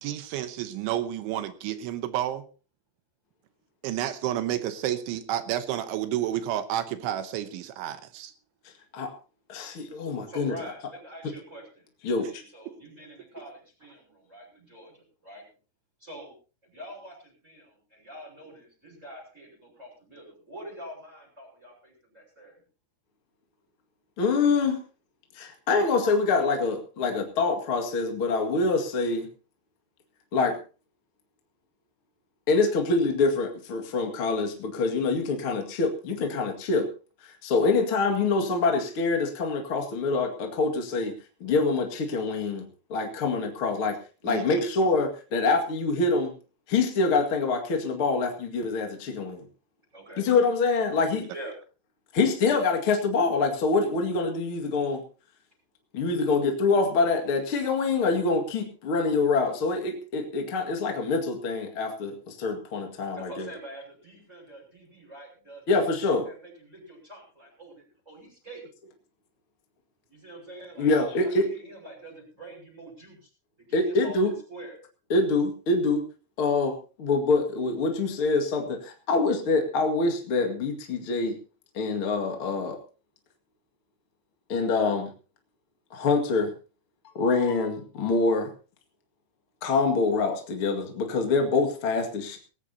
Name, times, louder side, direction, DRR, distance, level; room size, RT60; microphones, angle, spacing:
voice 1, 0.0-2.5 3.8-8.3 44.3-44.4, right 12 dB, 80° right, 10 dB, 3.3 m, -30 dB
voice 2, 9.5-10.5 12.0-12.3 24.2-24.8 25.3-29.3 30.3-30.6 32.5-36.9 37.2-41.1 41.4-42.6 42.9-44.0 44.2-46.3 46.7-49.4 50.2-51.2 52.1-55.0 55.9-63.5 65.7-66.2 70.8-71.5 73.7-74.3 75.1-76.0 76.4-81.4 81.7-82.8 84.5-85.1 85.9-86.5 87.1-88.5 89.6-92.4, left 3 dB, 45° left, 3 dB, 1.7 m, -25 dB
voice 3, 10.3-15.4 16.0-16.3 16.6-22.6 49.9-50.2 51.3-51.5 63.1-68.6 70.1-73.3 73.7-74.8, right 1 dB, 15° right, -2 dB, 6.2 m, -45 dB
19.5 x 16.0 x 2.9 m, 0.35 s
omnidirectional pair, 5.5 m